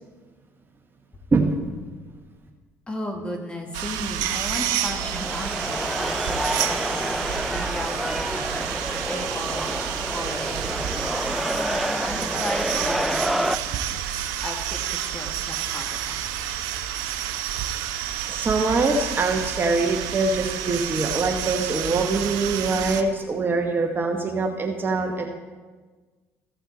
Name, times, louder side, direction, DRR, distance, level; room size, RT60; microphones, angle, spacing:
voice 1, 1.3-1.6 18.3-25.3, right 3 dB, 30° right, 2 dB, 1.2 m, -23 dB
voice 2, 2.9-11.5 12.0-14.1 14.4-16.2, equal, 15° left, 1 dB, 2.1 m, -35 dB
sound 1, 3.7-23.0, right 10 dB, 70° right, 0.7 m, -30 dB
sound 2, 4.6-13.6, equal, ahead, 0.4 m, -28 dB
15.0 x 5.8 x 4.2 m, 1.4 s
hypercardioid pair, 60°, 7 cm